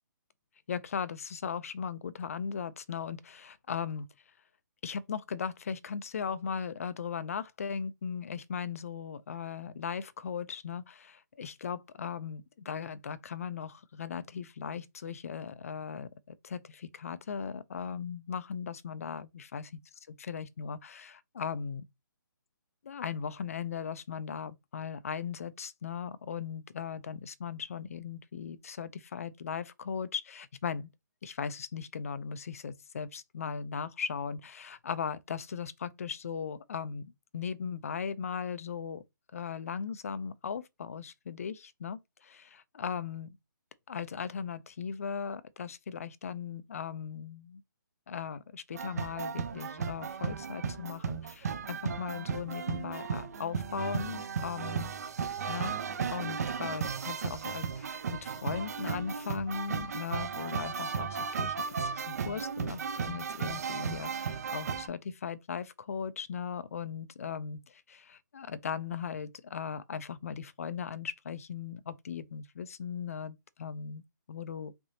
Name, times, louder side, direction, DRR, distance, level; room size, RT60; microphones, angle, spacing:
voice 1, 0.7-4.1 4.8-19.7 20.1-21.9 22.8-30.9 31.2-39.0 39.3-43.3 43.9-47.6 48.1-54.9 55.5-55.8 56.1-74.0 74.3-74.7, left 6 dB, 45° left, 0.3 m, -38 dB
sound 1, 48.7-64.9, right 6 dB, 50° right, 0.5 m, -35 dB
3.7 x 3.3 x 2.7 m
hypercardioid pair, 170°, 11 cm